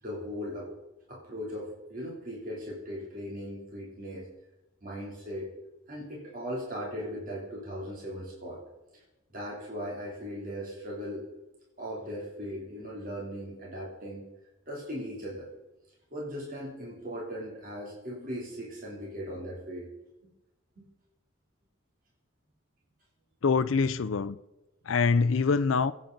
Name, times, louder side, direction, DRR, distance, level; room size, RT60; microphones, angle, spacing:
voice 1, 0.0-0.7 1.1-4.3 4.8-5.5 5.9-8.6 8.9-9.0 9.3-11.3 11.8-14.3 14.7-15.5 16.1-19.9 20.8-20.9, equal, 45° right, 3.2 m, -38 dB
voice 2, 23.4-24.4 24.9-25.9, left 4 dB, 85° left, 0.5 m, -24 dB
23.0 x 9.2 x 4.0 m
head